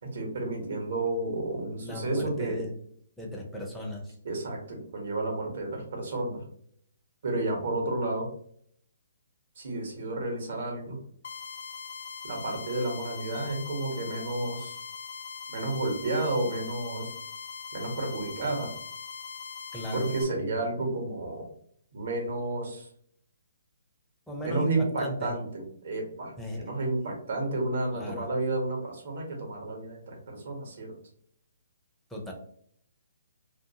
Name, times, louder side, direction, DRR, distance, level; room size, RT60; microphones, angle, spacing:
voice 1, 0.0-2.6 4.2-6.4 7.2-8.3 9.6-11.0 12.2-14.8 15.5-17.1 17.7-18.7 19.9-21.5 21.9-22.9 24.4-30.9, right 2 dB, 65° right, 0 dB, 1.0 m, -31 dB
voice 2, 1.8-2.7 3.2-4.1 19.7-20.1 24.3-25.3 26.4-26.6 27.9-28.3 32.1-32.3, right 1 dB, ahead, -3 dB, 0.5 m, -35 dB
sound 1, 11.2-20.2, left 6 dB, 60° left, 0.3 m, -41 dB
2.4 x 2.3 x 2.7 m, 0.65 s
hypercardioid pair, 150°, 0 cm